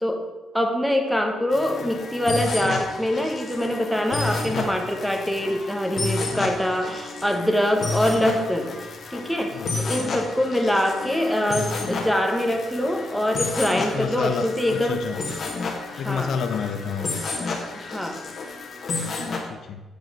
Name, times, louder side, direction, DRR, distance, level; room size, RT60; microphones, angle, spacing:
voice 1, 0.5-8.7 9.1-15.1 15.9-16.3 17.7-18.2, left 1 dB, ahead, 3 dB, 1.2 m, -24 dB
sound 1, 1.5-19.4, left 3 dB, 50° left, 1.8 m, -31 dB
voice 2, 9.5-9.8 13.8-15.2 16.0-17.1 19.0-19.8, left 6 dB, 65° left, 7 dB, 0.6 m, -30 dB
8.1 x 4.6 x 5.5 m, 1.1 s
cardioid pair, 90°, 0 cm